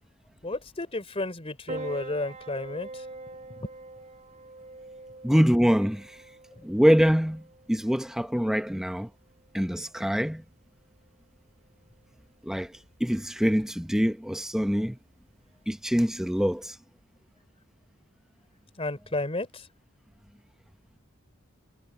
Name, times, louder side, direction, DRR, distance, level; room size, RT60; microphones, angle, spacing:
voice 1, 0.4-3.0 3.5-3.7 18.8-19.7, left 2 dB, 30° left, 3.4 m, -32 dB
Piano, 1.7-16.7, right 2 dB, 35° right, 4.3 m, -46 dB
voice 2, 5.2-6.2 6.6-7.4 7.7-9.1 9.5-10.4 12.4-12.7 13.0-15.0 15.7-16.8, equal, ahead, 0.9 m, -24 dB
head